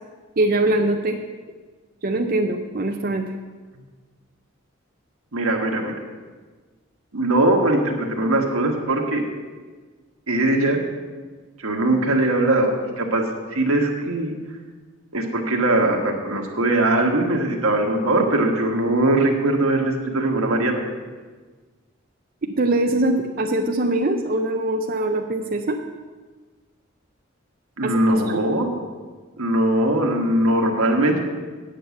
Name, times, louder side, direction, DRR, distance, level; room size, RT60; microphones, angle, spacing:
voice 1, 0.4-1.2 2.0-3.3 22.4-25.8 27.8-28.4, right 2 dB, 45° right, 3 dB, 0.5 m, -22 dB
voice 2, 5.3-6.0 7.1-9.2 10.3-10.8 11.6-13.2 13.5-14.3 15.1-20.8 27.8-28.7 29.4-31.2, right 1 dB, 85° right, 2 dB, 1.5 m, -20 dB
9.2 x 6.2 x 8.2 m, 1.4 s
head